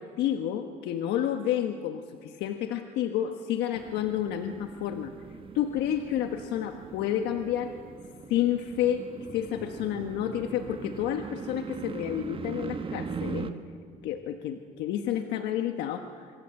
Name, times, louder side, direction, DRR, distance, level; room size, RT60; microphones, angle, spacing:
voice 1, 0.0-5.1 5.5-7.7 8.3-9.0 9.3-13.5 14.0-16.3, left 10 dB, 85° left, 6 dB, 1.3 m, -30 dB
sound 1, 3.7-13.5, right 5 dB, 30° right, 1.6 m, -40 dB
26.0 x 22.5 x 9.0 m, 2.1 s
cardioid pair, 110°, 17 cm